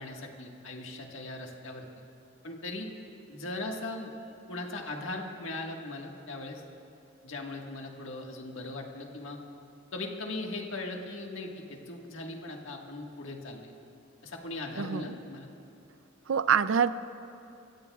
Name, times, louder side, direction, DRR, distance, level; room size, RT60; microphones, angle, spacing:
voice 1, 0.0-1.9 2.4-2.9 3.3-4.1 4.5-6.6 7.2-9.4 9.9-13.7 14.2-15.5, left 2 dB, 80° left, 1 dB, 1.6 m, -39 dB
voice 2, 14.8-15.1 16.3-16.9, right 7 dB, 80° right, 14 dB, 0.4 m, -25 dB
26.5 x 15.5 x 2.4 m, 2.6 s
head